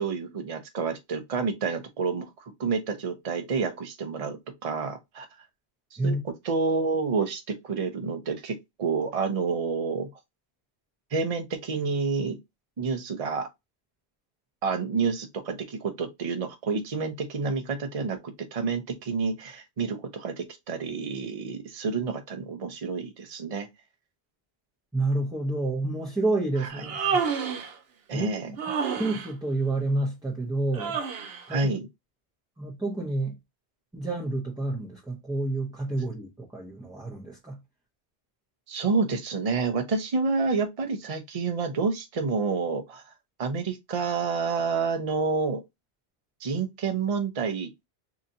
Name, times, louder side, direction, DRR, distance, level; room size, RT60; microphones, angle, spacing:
voice 1, 0.0-5.3 5.9-10.1 11.1-12.4 12.8-13.5 14.6-23.7 26.6-26.7 28.1-28.5 31.5-31.9 38.7-43.1 43.4-45.6 46.4-47.7, right 4 dB, 40° right, 0.7 m, -29 dB
voice 2, 24.9-27.2 28.1-28.6 29.0-31.0 31.5-31.7 32.6-33.4 33.9-37.6, right 2 dB, 5° right, 0.8 m, -29 dB
Human voice, 26.7-27.7 28.6-29.3 30.7-31.4, right 6 dB, 70° right, 0.9 m, -29 dB
3.9 x 2.9 x 2.7 m
omnidirectional pair, 1.1 m